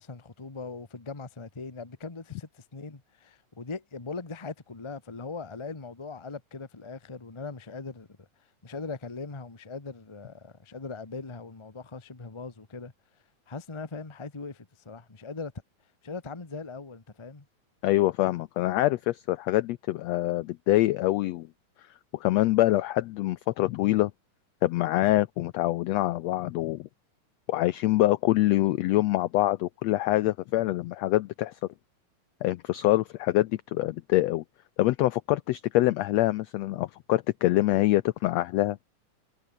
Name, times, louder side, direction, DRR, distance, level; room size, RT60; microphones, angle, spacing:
voice 1, 0.0-8.3 8.6-12.9 13.5-15.5 16.0-17.4, left 4 dB, 35° left, 0.4 m, -40 dB
voice 2, 17.8-21.5 22.1-24.1 24.6-26.9 27.5-31.6 32.4-34.4 34.8-38.8, left 17 dB, 90° left, 1.4 m, -25 dB
omnidirectional pair, 3.7 m